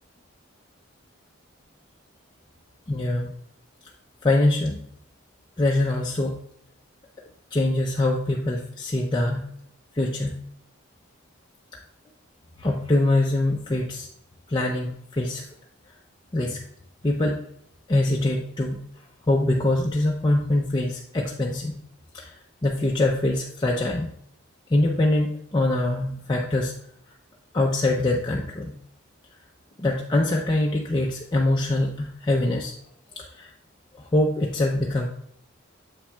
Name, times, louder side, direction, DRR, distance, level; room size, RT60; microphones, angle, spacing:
voice 1, 2.9-3.3 4.2-4.8 5.6-6.4 7.5-9.5 9.9-10.4 12.6-14.1 14.5-15.4 16.3-16.6 17.0-17.4 17.9-18.8 19.3-21.8 22.1-22.3 22.6-24.1 24.7-26.7 27.5-28.7 29.8-32.7 33.2-33.5 33.9-35.1, left 2 dB, 20° left, -1 dB, 0.4 m, -23 dB
7.3 x 5.8 x 2.2 m, 0.71 s
head